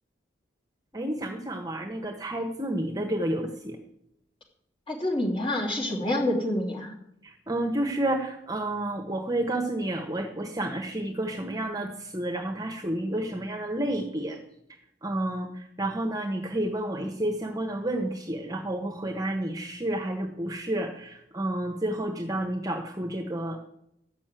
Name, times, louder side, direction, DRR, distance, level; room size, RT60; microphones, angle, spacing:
voice 1, 0.9-3.8 7.2-14.4 15.0-23.6, right 1 dB, 20° right, 2 dB, 1.1 m, -30 dB
voice 2, 4.9-6.9, left 1 dB, 25° left, -1 dB, 2.9 m, -27 dB
13.0 x 6.3 x 9.0 m, 0.77 s
head